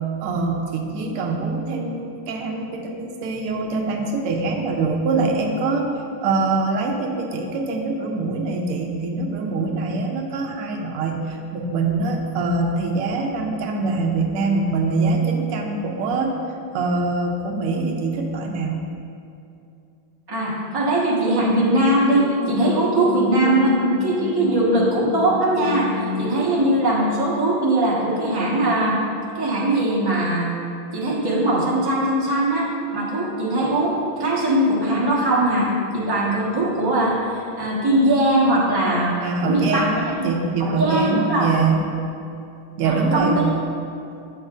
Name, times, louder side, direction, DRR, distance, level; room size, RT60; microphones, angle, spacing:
voice 1, 0.2-5.9 6.2-16.3 16.7-18.8 26.4-26.6 39.2-41.8 42.8-43.4, right 3 dB, 85° right, 2 dB, 1.6 m, -24 dB
voice 2, 20.3-29.0 29.3-30.5 30.9-39.2 39.4-39.8 40.2-40.3 40.6-41.5 42.8-43.3, right 1 dB, 20° right, -6 dB, 0.7 m, -20 dB
sound 1, 21.2-26.6, left 4 dB, 75° left, 1.4 m, -29 dB
7.9 x 6.5 x 2.5 m, 2.6 s
omnidirectional pair, 2.4 m